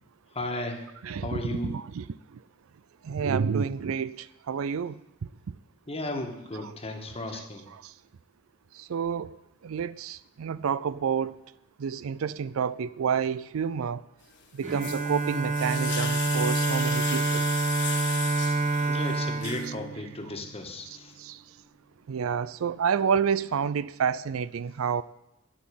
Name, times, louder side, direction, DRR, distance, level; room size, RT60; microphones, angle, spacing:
voice 1, 0.3-0.8 1.2-1.7 5.9-7.6 18.9-21.1, left 1 dB, 30° left, 1.6 m, -34 dB
voice 2, 1.0-2.4 3.0-5.0 6.5-6.8 7.3-7.9 8.7-11.4 11.8-14.0 14.5-17.5 19.4-19.7 20.2-20.4 20.8-21.4 22.1-25.0, right 6 dB, 75° right, 0.4 m, -30 dB
sound 1, 14.3-19.7, left 7 dB, 55° left, 1.7 m, -36 dB
Bowed string instrument, 14.6-20.6, right 3 dB, 35° right, 1.7 m, -28 dB
12.0 x 6.2 x 9.4 m
head